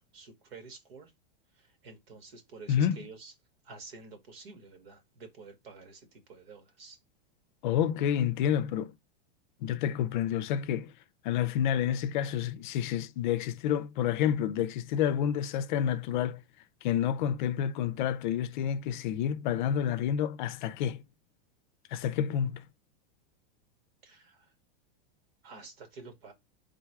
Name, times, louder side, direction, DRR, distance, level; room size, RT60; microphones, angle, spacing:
voice 1, 0.1-1.1 1.5-3.3 3.6-7.0 24.0-24.5 25.4-26.3, right 4 dB, 85° right, 1.8 m, -49 dB
voice 2, 7.6-8.9 9.6-10.9 11.2-16.4 16.8-21.0 21.9-22.6, left 9 dB, 55° left, 0.5 m, -29 dB
3.8 x 2.3 x 4.5 m
supercardioid pair, 165°, 29 cm